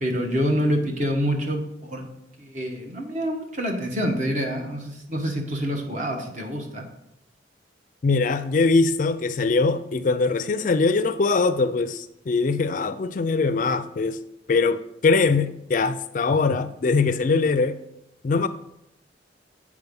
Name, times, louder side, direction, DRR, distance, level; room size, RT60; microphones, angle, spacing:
voice 1, 0.0-2.1 2.4-6.8, equal, 45° right, 1.3 m, -26 dB
voice 2, 8.0-14.2 14.5-17.8 18.2-18.5, left 4 dB, 45° left, 0.4 m, -22 dB
8.0 x 4.9 x 5.3 m
head